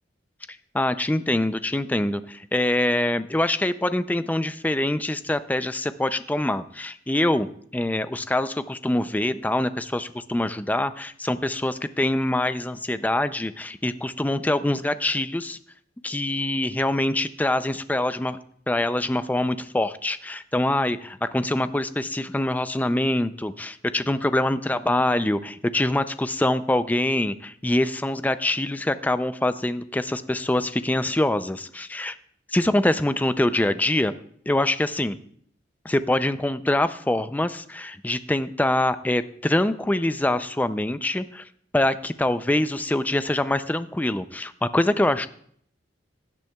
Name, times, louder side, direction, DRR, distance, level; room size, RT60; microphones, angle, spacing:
voice 1, 0.7-7.5 7.7-15.6 16.0-18.4 18.7-32.2 32.5-34.1 34.5-35.2 35.8-41.5 41.7-45.3, left 1 dB, 10° left, 12 dB, 0.4 m, -24 dB
17.0 x 10.5 x 2.3 m, 0.63 s
head